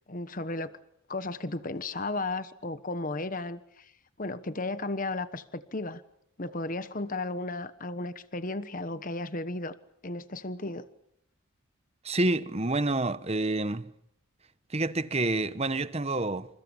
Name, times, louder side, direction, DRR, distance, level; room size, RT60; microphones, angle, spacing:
voice 1, 0.1-0.7 1.1-3.9 4.2-6.0 6.4-9.7 10.0-10.9, left 2 dB, 40° left, 1.2 m, -34 dB
voice 2, 12.0-13.9 14.7-16.5, right 2 dB, 30° right, 1.1 m, -28 dB
28.0 x 27.5 x 7.2 m
head